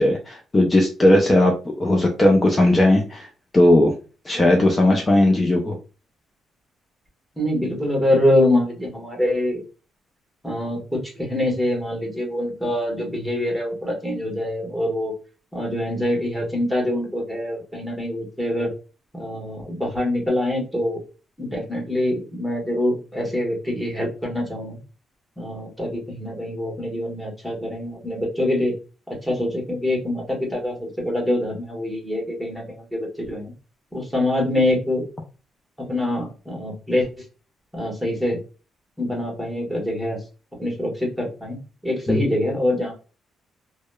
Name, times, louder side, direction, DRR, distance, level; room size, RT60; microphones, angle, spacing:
voice 1, 0.0-3.3 3.5-3.9 4.3-5.8 42.1-42.2, left 1 dB, 25° left, 1 dB, 0.5 m, -17 dB
voice 2, 7.4-9.6 10.4-15.1 15.5-18.7 19.1-21.0 21.4-24.8 25.4-28.7 29.2-33.5 33.9-35.0 35.9-37.1 37.7-38.4 39.0-40.2 40.6-41.6 41.8-42.9, left 1 dB, ahead, -1 dB, 1.2 m, -24 dB
2.8 x 2.1 x 2.2 m, 0.34 s
cardioid pair, 90°, 0 cm